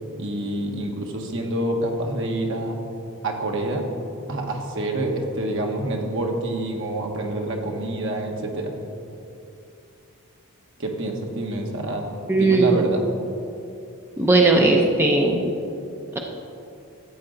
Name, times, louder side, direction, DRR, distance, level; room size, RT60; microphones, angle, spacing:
voice 1, 0.2-2.8 3.2-3.9 4.3-8.7 10.8-12.0 12.3-13.1, right 1 dB, 60° right, 2 dB, 1.3 m, -27 dB
voice 2, 12.3-12.8 14.2-15.4, right 2 dB, 10° right, 0 dB, 0.7 m, -17 dB
13.5 x 8.5 x 3.9 m, 2.7 s
head